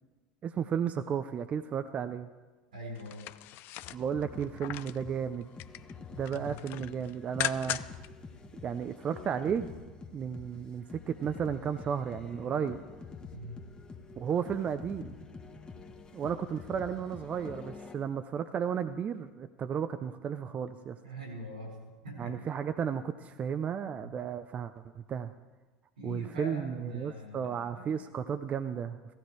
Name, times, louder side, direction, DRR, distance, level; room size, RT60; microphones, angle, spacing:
voice 1, 0.4-2.3 3.9-5.5 6.1-8.0 8.6-9.7 10.1-12.8 14.2-15.2 16.1-21.0 22.2-25.3 26.0-29.0, right 7 dB, 35° right, 9 dB, 0.6 m, -33 dB
voice 2, 2.7-3.3 6.3-6.6 12.5-12.6 13.3-13.6 21.0-22.4 24.0-24.1 26.0-27.9, equal, 85° right, 1 dB, 4.7 m, -43 dB
sound 1, 3.0-5.0 5.4-5.9 6.2-8.1 8.4-8.5, left 15 dB, 50° left, 0.5 m, -38 dB
sound 2, 3.8-18.0, left 4 dB, 20° left, 1.5 m, -47 dB
15.5 x 15.0 x 4.7 m, 1.2 s
hypercardioid pair, 80°, 4 cm